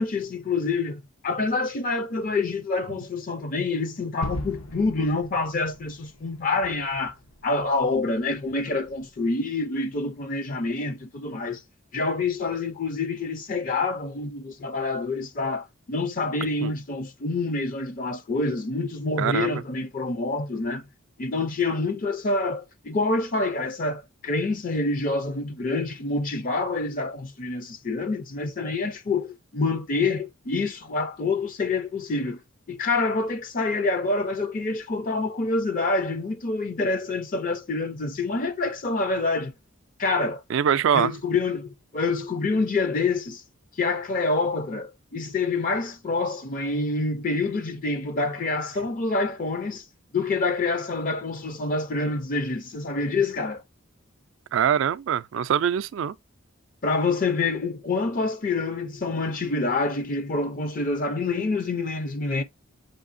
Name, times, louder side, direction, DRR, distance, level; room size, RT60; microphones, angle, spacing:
voice 1, 0.0-7.1 7.4-11.6 11.9-20.8 21.2-32.4 32.7-39.5 40.0-40.4 40.9-43.4 43.8-49.8 50.1-53.6 56.8-62.4, left 3 dB, 40° left, 0.5 m, -27 dB
Gunshot gunfire / Fireworks / Boom, 4.2-9.0, left 1 dB, 80° left, 0.9 m, -39 dB
voice 2, 19.2-19.5 40.5-41.1 54.5-56.2, right 8 dB, 65° right, 0.3 m, -23 dB
7.5 x 2.7 x 2.5 m
head